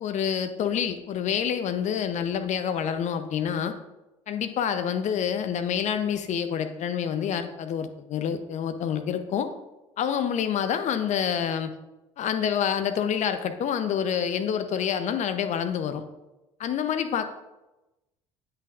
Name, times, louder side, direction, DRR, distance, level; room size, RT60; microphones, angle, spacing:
voice 1, 0.0-3.8 4.3-9.5 10.0-11.7 12.2-16.0 16.6-17.2, left 8 dB, 50° left, 9 dB, 0.7 m, -27 dB
8.9 x 5.9 x 2.5 m, 0.99 s
hypercardioid pair, 60°, 16 cm